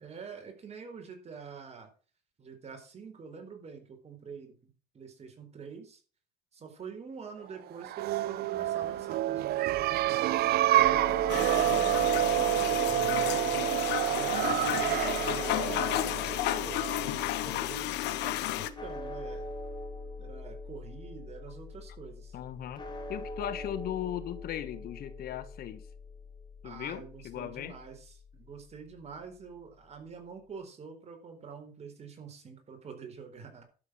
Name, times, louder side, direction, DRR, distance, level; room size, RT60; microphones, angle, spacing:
voice 1, 0.0-1.9 2.4-4.5 4.9-6.0 6.5-12.5 13.4-19.5 20.2-22.4 26.6-33.6, right 5 dB, 40° right, 4.2 m, -46 dB
sound 1, 7.8-17.3, right 14 dB, 65° right, 0.5 m, -28 dB
sound 2, 10.8-29.0, left 2 dB, 25° left, 4.9 m, -43 dB
sound 3, 11.3-18.7, left 14 dB, 85° left, 1.1 m, -32 dB
voice 2, 12.9-13.4 22.3-22.8 23.1-25.9 26.6-27.8, left 11 dB, 65° left, 1.2 m, -38 dB
12.0 x 7.3 x 6.3 m
cardioid pair, 110°, 17 cm